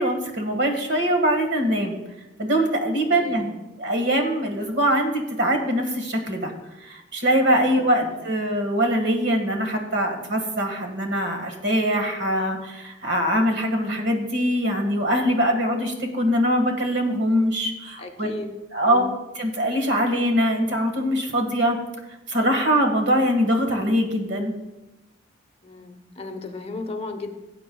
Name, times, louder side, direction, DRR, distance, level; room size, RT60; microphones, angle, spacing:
voice 1, 0.0-2.0 2.4-3.5 3.8-6.5 6.8-18.3 18.7-19.0 19.3-21.8 22.3-24.5, equal, 60° right, 4 dB, 1.7 m, -22 dB
voice 2, 3.1-3.6 7.7-8.1 18.0-18.6 18.9-19.1 25.6-27.3, left 3 dB, 30° left, 5 dB, 0.8 m, -35 dB
18.0 x 8.4 x 2.3 m, 1.0 s
head